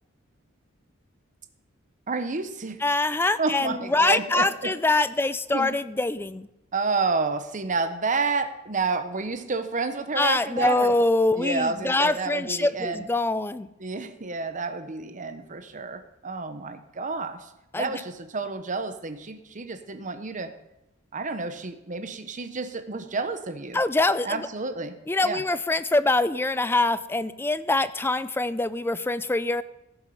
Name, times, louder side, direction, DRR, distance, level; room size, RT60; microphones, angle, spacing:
voice 1, 2.1-2.8 3.4-4.7 5.5-5.8 6.7-11.0 11.3-13.1 13.8-20.5 21.1-23.8 24.2-25.0 25.2-25.4, right 4 dB, 40° right, 9 dB, 1.0 m, -30 dB
voice 2, 2.8-6.5 10.2-13.7 17.7-17.9 23.7-24.5 25.1-29.6, left 2 dB, 10° left, 14 dB, 0.4 m, -24 dB
15.5 x 7.1 x 5.6 m, 0.90 s
head